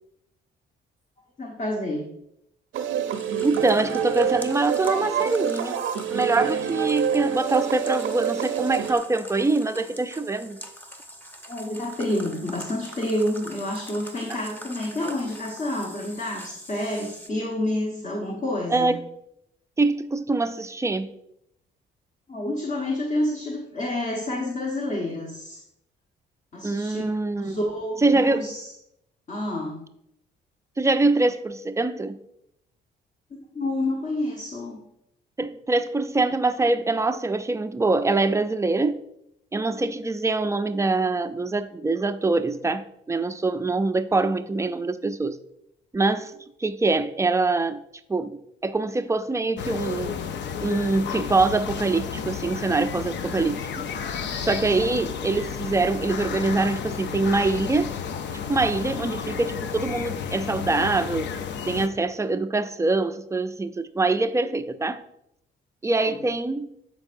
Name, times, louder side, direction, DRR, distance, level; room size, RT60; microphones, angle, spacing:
voice 1, 1.4-2.0 11.4-18.9 22.3-25.6 26.5-27.0 27.4-28.7 29.3-29.8 33.3-34.8 58.9-59.1 66.1-66.2, left 1 dB, 35° left, 1.3 m, -29 dB
sound 1, 2.7-8.9, right 8 dB, 80° right, 0.6 m, -27 dB
sound 2, 3.1-17.3, equal, 10° left, 0.9 m, -44 dB
voice 2, 3.4-5.8 6.1-10.6 18.7-19.0 19.8-21.1 26.6-27.6 28.0-28.5 30.8-32.2 35.4-39.0 39.5-45.4 45.9-46.3 46.6-47.8 48.1-50.2 50.6-53.7 54.4-57.9 58.5-61.4 61.7-65.0 65.8-66.7, right 3 dB, 15° right, 0.4 m, -24 dB
Ambience garden afternoon summer Foggy Ordrup, 49.6-61.9, left 7 dB, 65° left, 0.6 m, -32 dB
12.0 x 4.6 x 2.6 m
cardioid pair, 90°, 20 cm